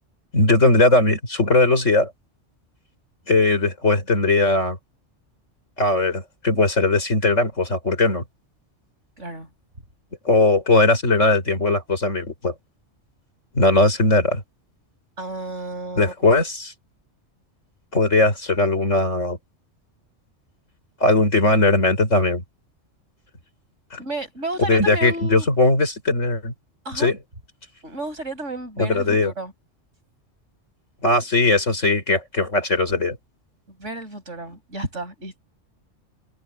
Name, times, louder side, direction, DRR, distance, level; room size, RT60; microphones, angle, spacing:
voice 1, 0.3-2.1 3.3-4.8 5.8-8.2 10.2-12.5 13.5-14.4 16.0-16.7 17.9-19.4 21.0-22.4 23.9-24.0 24.6-26.5 27.0-27.2 28.8-29.3 31.0-33.2, left 2 dB, 90° left, 5.9 m, -19 dB
voice 2, 9.2-9.5 15.2-16.1 24.0-25.5 26.8-27.1 27.8-29.5 33.8-35.4, right 2 dB, 75° right, 7.5 m, -32 dB
omnidirectional pair, 1.3 m